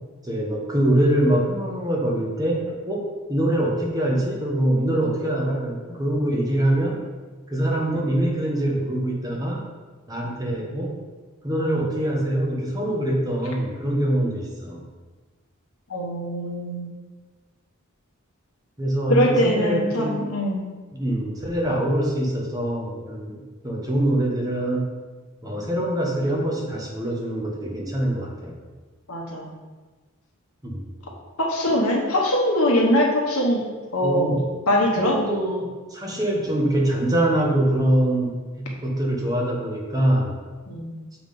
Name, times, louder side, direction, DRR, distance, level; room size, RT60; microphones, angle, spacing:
voice 1, 0.2-7.1 7.5-9.7 10.1-11.0 11.4-14.8 18.8-20.2 20.9-23.4 23.6-24.9 25.4-28.5 30.6-30.8 34.0-34.4 35.0-40.4, right 1 dB, 15° right, -1 dB, 1.2 m, -24 dB
voice 2, 15.9-16.9 19.1-20.6 29.1-29.5 31.4-33.6 33.9-34.3 34.7-35.2 40.7-40.9, left 1 dB, 90° left, -1 dB, 1.1 m, -22 dB
7.1 x 3.7 x 5.3 m, 1.3 s
head